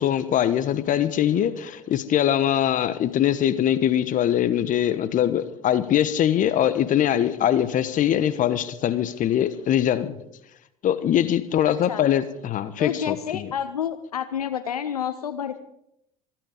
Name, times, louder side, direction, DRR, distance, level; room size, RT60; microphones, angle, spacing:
voice 1, 0.0-10.2 10.8-13.5, left 10 dB, 45° left, 1.2 m, -22 dB
voice 2, 11.7-12.0 12.8-15.6, left 9 dB, 85° left, 0.6 m, -29 dB
26.0 x 9.2 x 5.1 m
figure-of-eight pair, 65°, 19 cm